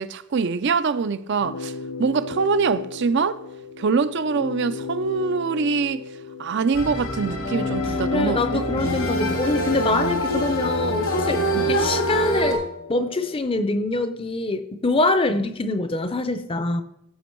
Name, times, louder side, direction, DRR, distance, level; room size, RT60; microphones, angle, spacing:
voice 1, 0.0-1.7 2.0-3.4 3.8-6.0 6.4-8.7 11.5-11.8, right 5 dB, 50° right, 0.4 m, -24 dB
sound 1, 1.4-13.4, left 5 dB, 70° left, 0.5 m, -35 dB
sound 2, 6.7-12.5, equal, 85° left, 2.9 m, -25 dB
voice 2, 8.1-12.6 12.9-16.8, left 2 dB, 25° left, 0.6 m, -24 dB
15.0 x 5.2 x 4.5 m
head